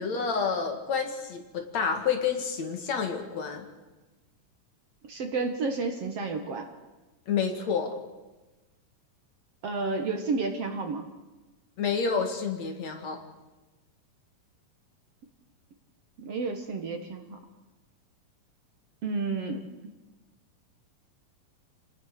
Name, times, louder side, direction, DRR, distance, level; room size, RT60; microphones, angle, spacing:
voice 1, 0.0-3.7 7.3-7.9 11.8-13.2, left 6 dB, 55° left, 5 dB, 3.1 m, -29 dB
voice 2, 5.1-6.7 9.6-11.0 16.2-17.4 19.0-19.6, right 4 dB, 55° right, 5 dB, 2.2 m, -31 dB
27.5 x 19.0 x 6.7 m, 1.1 s
omnidirectional pair, 3.8 m